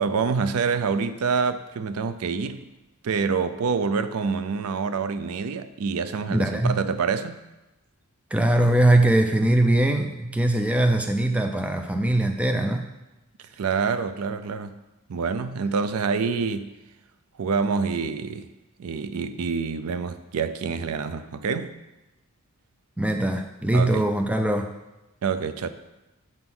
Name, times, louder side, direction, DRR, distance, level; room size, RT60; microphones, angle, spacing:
voice 1, 0.0-2.7 3.0-7.4 13.6-14.8 15.1-16.7 17.4-18.5 18.8-21.7 23.7-24.1 25.2-25.7, right 5 dB, 80° right, 11 dB, 0.4 m, -26 dB
voice 2, 6.3-6.8 8.3-12.9 23.0-24.7, right 1 dB, 5° right, 5 dB, 0.3 m, -21 dB
6.8 x 3.7 x 6.0 m, 1.0 s
head